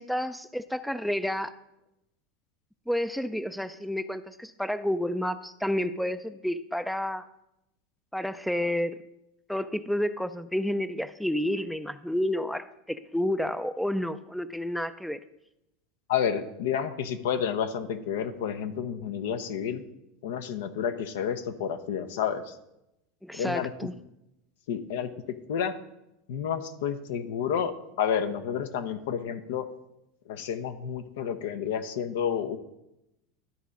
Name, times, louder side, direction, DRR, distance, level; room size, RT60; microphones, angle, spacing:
voice 1, 0.0-1.5 2.9-7.3 8.1-9.0 9.5-15.2 23.2-23.9, left 1 dB, ahead, 13 dB, 0.4 m, -30 dB
voice 2, 16.1-19.8 20.2-22.6 23.3-23.7 24.7-25.7 26.3-27.7 28.0-29.7 30.3-32.6, left 8 dB, 75° left, 9 dB, 0.8 m, -30 dB
12.5 x 4.2 x 5.1 m, 0.87 s
hypercardioid pair, 100°, 0 cm